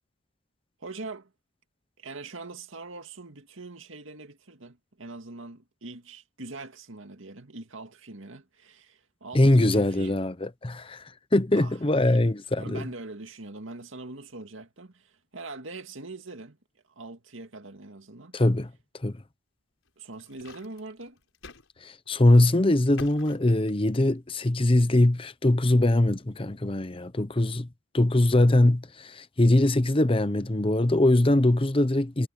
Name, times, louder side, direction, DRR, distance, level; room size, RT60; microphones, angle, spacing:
voice 1, 0.8-1.3 2.0-10.2 11.5-11.8 12.0-12.2 12.6-16.6 17.0-18.4 20.0-21.2, right 3 dB, 80° right, 2.2 m, -42 dB
voice 2, 9.3-11.0 11.3-12.8 18.3-18.7 19.0-19.2 21.8-27.7 27.9-32.3, left 1 dB, 25° left, 0.8 m, -22 dB
sound 1, 19.9-21.7 22.1-22.2 23.0-24.2, left 3 dB, 85° left, 5.0 m, -47 dB
head